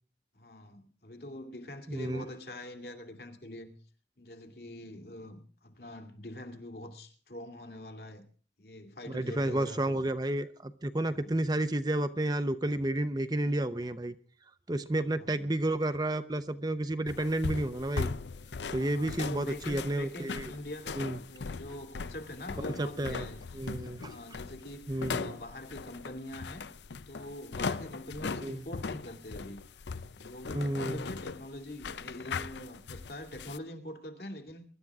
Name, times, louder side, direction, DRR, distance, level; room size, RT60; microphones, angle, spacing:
voice 1, 0.3-3.8 4.2-8.2 8.6-10.0 11.0-11.4 15.0-15.5 18.7-21.0 21.3-23.6 24.1-26.7 27.1-29.6 30.1-34.6, left 1 dB, 60° left, 2.5 m, -44 dB
voice 2, 1.9-2.2 9.1-14.1 14.7-18.1 18.7-20.5 20.9-21.2 22.8-23.3 23.5-24.1 24.9-25.4 28.4-28.6 30.5-31.0, right 1 dB, 20° right, 0.7 m, -31 dB
sound 1, 17.1-33.6, left 4 dB, 85° left, 0.6 m, -39 dB
23.5 x 12.0 x 3.6 m
head